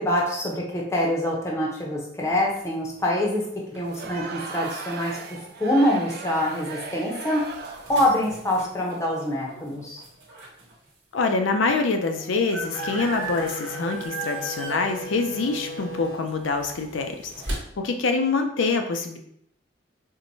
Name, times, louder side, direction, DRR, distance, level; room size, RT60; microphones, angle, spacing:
voice 1, 0.0-3.5 3.7-5.2 5.6-7.5 7.9-10.0, left 1 dB, 15° left, -3 dB, 0.6 m, -25 dB
sound 1, 2.3-10.7 11.3-11.4 11.6-17.5, right 2 dB, 75° right, 1.1 m, -39 dB
Crowd, 3.8-8.0, right 4 dB, 55° right, 0.4 m, -37 dB
voice 2, 11.1-17.3 17.8-19.2, left 3 dB, 80° left, 5 dB, 0.5 m, -25 dB
sound 2, 12.6-17.8, left 1 dB, 50° left, 0.7 m, -38 dB
4.5 x 2.1 x 2.6 m, 0.69 s
head